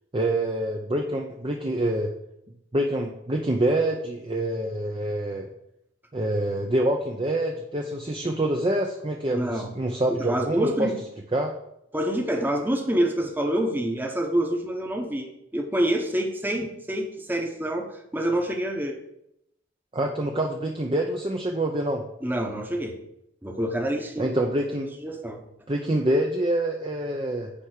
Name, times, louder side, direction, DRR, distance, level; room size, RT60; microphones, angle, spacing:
voice 1, 0.1-2.1 2.7-5.5 6.1-10.9 11.3-11.5 19.9-22.0 24.2-24.9 25.7-27.5, right 1 dB, 25° right, 2 dB, 0.7 m, -26 dB
voice 2, 9.3-9.7 10.1-11.0 11.9-19.0 22.2-23.0 23.4-24.3 25.0-25.4, right 1 dB, 10° right, 2 dB, 1.0 m, -27 dB
10.0 x 3.5 x 6.6 m, 0.81 s
head